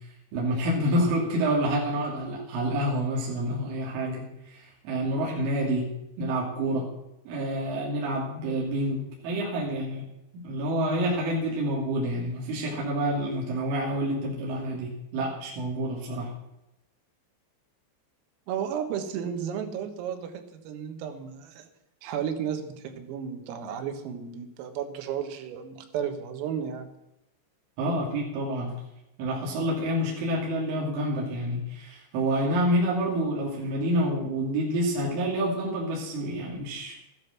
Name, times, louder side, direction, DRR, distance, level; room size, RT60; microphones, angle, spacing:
voice 1, 0.3-5.9 6.2-6.9 7.3-10.0 10.3-16.3 27.8-28.7 29.2-37.0, right 1 dB, 70° right, -3 dB, 5.3 m, -28 dB
voice 2, 18.5-21.7 22.0-26.9, right 8 dB, 85° right, 6 dB, 4.2 m, -33 dB
14.0 x 12.0 x 6.0 m, 0.88 s
omnidirectional pair, 5.9 m